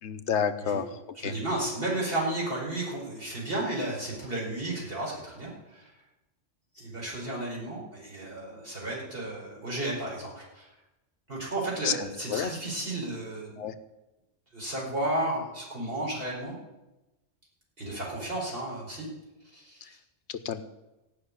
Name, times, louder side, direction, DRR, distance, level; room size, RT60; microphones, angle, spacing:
voice 1, 0.0-1.3 11.8-12.5 13.6-13.7 19.8-19.9 20.3-20.6, left 7 dB, 75° left, 11 dB, 1.0 m, -31 dB
voice 2, 1.2-5.9 6.7-10.7 11.3-13.7 14.5-16.6 17.8-19.1 19.5-19.9, right 1 dB, 50° right, -4 dB, 5.4 m, -33 dB
15.0 x 6.2 x 10.0 m, 1.0 s
omnidirectional pair, 1.2 m